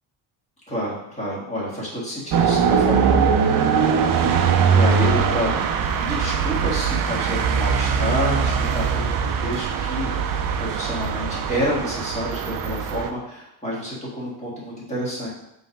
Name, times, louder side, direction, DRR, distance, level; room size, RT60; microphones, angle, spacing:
voice 1, 0.7-15.3, equal, 15° left, -6 dB, 1.9 m, -29 dB
sound 1, 2.3-13.1, right 6 dB, 45° right, 0.5 m, -21 dB
5.6 x 3.5 x 5.3 m, 0.82 s
cardioid pair, 165°, 48 cm